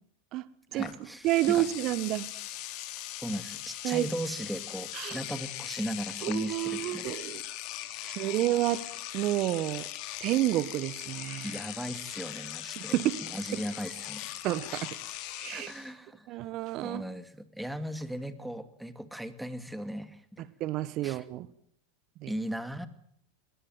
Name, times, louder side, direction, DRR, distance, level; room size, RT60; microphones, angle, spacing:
voice 1, 0.7-1.7 3.2-7.1 8.0-8.3 11.4-12.9 13.2-14.3 15.5-16.4 16.8-20.5 21.0-21.3 22.3-22.9, equal, 5° right, 2.4 m, -37 dB
Engine / Domestic sounds home sounds, 0.8-0.9 1.2-15.9, left 14 dB, 50° left, 3.4 m, -40 dB
voice 2, 1.2-2.3 3.8-4.1 4.9-5.2 6.2-7.4 8.0-8.8 9.1-9.9 10.2-11.5 12.8-13.2 13.5-13.6 14.4-14.9 15.4-15.7 16.3-17.0 20.6-21.5 22.2-22.3, right 15 dB, 45° right, 1.2 m, -29 dB
21.0 x 19.0 x 9.2 m
hypercardioid pair, 100°, 0 cm